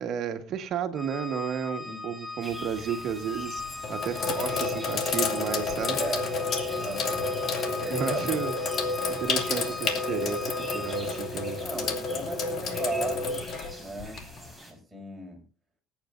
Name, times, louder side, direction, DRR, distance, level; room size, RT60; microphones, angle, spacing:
voice 1, 0.0-3.6 3.9-6.0 7.9-8.5 9.1-11.6, right 7 dB, 60° right, 7 dB, 1.9 m, -32 dB
Organ, 0.9-11.4, left 3 dB, 30° left, 3.2 m, -39 dB
sound 1, 2.4-14.7, equal, 10° left, 5.0 m, -46 dB
Sink (filling or washing), 2.5-2.9 3.6-14.5, left 4 dB, 55° left, 2.5 m, -30 dB
voice 2, 5.8-6.3 6.6-7.3 7.8-8.2 11.6-13.5 13.8-14.2 14.7-15.4, right 2 dB, 10° right, -1 dB, 6.1 m, -36 dB
25.5 x 8.9 x 2.6 m, 0.34 s
supercardioid pair, 95°, 0 cm